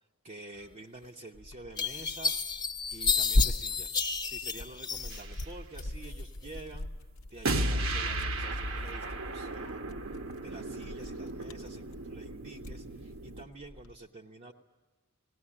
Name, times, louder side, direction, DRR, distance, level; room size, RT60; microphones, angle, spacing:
voice 1, 0.2-2.4 2.9-4.0 4.2-6.9 7.3-10.1 10.4-14.5, right 2 dB, 35° right, -1 dB, 0.8 m, -48 dB
sound 1, 1.0-1.1 1.8-5.4 5.8-6.5, left 5 dB, 20° left, 0.7 m, -31 dB
Tearing, 1.3-14.0, left 1 dB, 70° left, 0.7 m, -38 dB
sound 2, 5.1-5.4 7.4-13.4, right 2 dB, 65° right, 1.0 m, -35 dB
18.5 x 18.5 x 9.9 m, 1.3 s
head